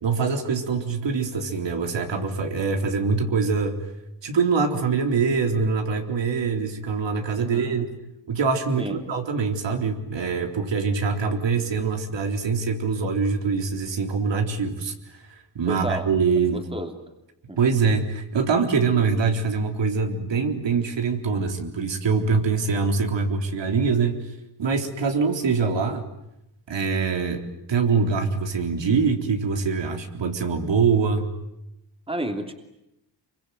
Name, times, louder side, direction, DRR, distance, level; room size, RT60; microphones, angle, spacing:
voice 1, 0.0-3.8 4.2-7.9 8.3-15.2 15.6-16.6 17.6-24.3 24.6-26.0 26.7-27.4 27.7-31.3, right 5 dB, 70° right, 4 dB, 3.8 m, -24 dB
voice 2, 7.4-7.8 8.8-9.0 15.7-16.9 17.5-17.6 32.1-32.5, right 1 dB, 10° right, 5 dB, 3.0 m, -32 dB
26.5 x 24.0 x 9.3 m, 0.85 s
wide cardioid pair, 125°, 46 cm